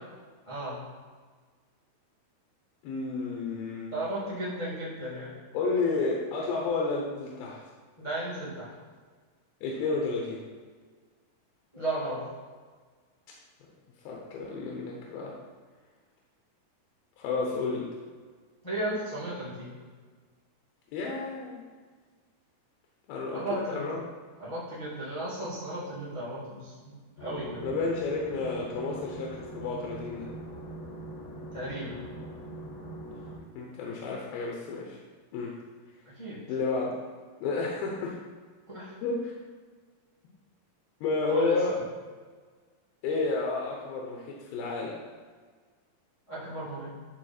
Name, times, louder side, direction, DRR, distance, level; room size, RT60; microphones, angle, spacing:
voice 1, 0.5-0.8 3.9-5.3 8.0-8.7 11.7-12.2 18.6-19.7 23.3-23.9 24.4-26.9 27.2-27.6 31.5-32.0 36.2-36.4 38.7-39.0 41.3-41.7 46.3-46.9, right 1 dB, 20° left, -9 dB, 0.8 m, -35 dB
voice 2, 2.8-4.0 5.5-7.6 9.6-10.4 14.0-15.4 17.2-17.9 20.9-21.6 23.1-24.0 27.6-30.3 33.5-35.0 35.3-35.6 36.5-36.9 37.4-38.2 39.0-39.3 41.0-41.8 43.0-45.0, left 3 dB, 90° left, -2 dB, 2.8 m, -31 dB
sound 1, 27.2-33.4, right 1 dB, 70° left, 2.9 m, -42 dB
11.5 x 4.0 x 4.3 m, 1.5 s
omnidirectional pair, 4.2 m